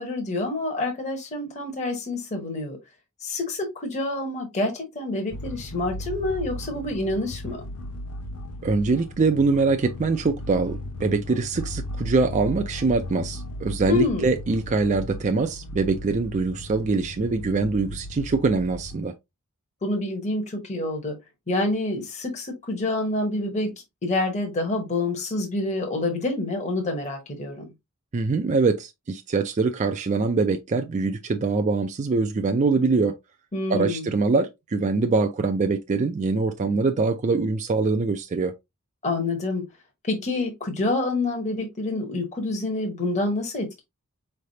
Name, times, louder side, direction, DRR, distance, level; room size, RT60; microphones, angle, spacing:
voice 1, 0.0-2.8 3.2-7.6 13.9-14.3 19.8-21.1 21.5-23.7 24.0-27.7 33.5-34.1 39.0-39.6 40.0-43.8, left 2 dB, 35° left, 1.0 m, -27 dB
sound 1, 5.3-19.0, left 1 dB, 75° left, 0.6 m, -36 dB
voice 2, 8.6-19.1 28.1-33.2 33.7-38.5, right 4 dB, 35° right, 0.4 m, -23 dB
4.7 x 3.3 x 2.7 m
head